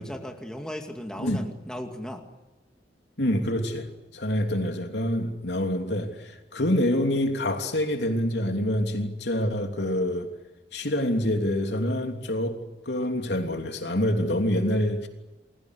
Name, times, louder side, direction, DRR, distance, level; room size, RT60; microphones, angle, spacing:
voice 1, 0.0-2.2, equal, 5° left, 3 dB, 2.5 m, -36 dB
voice 2, 3.2-10.3 10.7-12.6 12.8-15.1, left 1 dB, 75° left, 4 dB, 3.2 m, -26 dB
29.0 x 22.5 x 8.4 m, 1.1 s
head